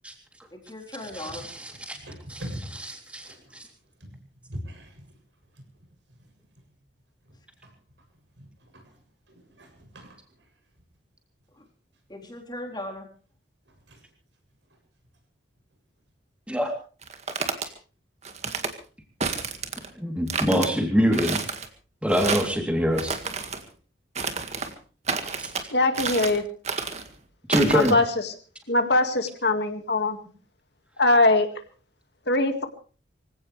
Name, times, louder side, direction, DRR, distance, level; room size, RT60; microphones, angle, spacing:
voice 1, 0.5-1.5 11.5-11.7 12.1-13.1, left 1 dB, 20° left, 0 dB, 4.0 m, -38 dB
voice 2, 1.1-2.0 2.3-2.4 2.8-3.6 16.5-16.7 19.9-21.4 22.0-23.2 25.4-25.5 27.5-28.0, equal, 5° right, 2 dB, 3.3 m, -25 dB
voice 3, 2.0-2.9 3.3-3.4 4.1-4.2 4.5-5.1 7.6-7.7 8.4-8.5 8.7-8.9 9.3-10.2 13.9-14.0, equal, 70° right, 4 dB, 7.4 m, -40 dB
sound 1, 17.0-17.7 18.2-18.7 19.2-19.9 20.3-20.7 21.1-21.7 22.1-22.6 22.9-23.6 24.2-24.7 25.1-25.6 25.9-26.4 26.6-27.1 27.5-27.9, right 4 dB, 35° right, 1.9 m, -29 dB
voice 4, 25.7-26.4 27.7-28.3 28.7-30.2 31.0-31.5 32.3-32.7, left 2 dB, 60° left, 7 dB, 2.1 m, -21 dB
25.0 x 16.5 x 3.4 m, 0.39 s
head